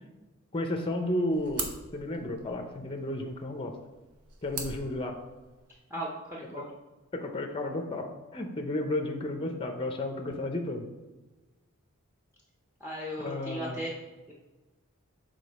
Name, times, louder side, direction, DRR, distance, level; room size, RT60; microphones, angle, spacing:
voice 1, 0.5-3.7 4.4-5.2 6.5-6.6 7.1-10.9 13.2-13.8, left 1 dB, 25° left, 4 dB, 0.5 m, -33 dB
sound 1, 0.8-5.8, right 5 dB, 80° right, 0.9 m, -43 dB
voice 2, 5.9-6.7 12.8-13.9 14.3-14.4, equal, 10° right, -3 dB, 0.7 m, -36 dB
6.7 x 3.7 x 4.1 m, 1.2 s
head